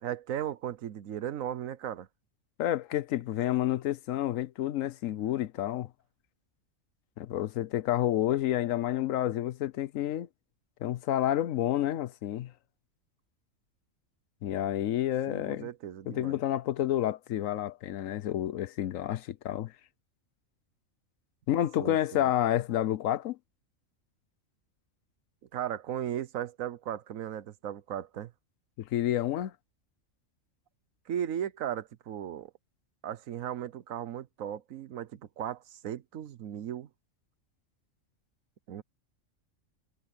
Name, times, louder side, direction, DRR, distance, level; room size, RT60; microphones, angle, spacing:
voice 1, 0.0-2.1 15.3-16.4 21.8-22.3 25.5-28.3 31.1-32.5 33.0-36.9 38.7-38.8, right 10 dB, 85° right, 1.2 m, -36 dB
voice 2, 2.6-5.9 7.2-10.3 10.8-12.5 14.4-15.7 16.1-19.7 21.5-23.4 28.8-29.5, left 12 dB, 80° left, 1.1 m, -29 dB
omnidirectional pair, 1.4 m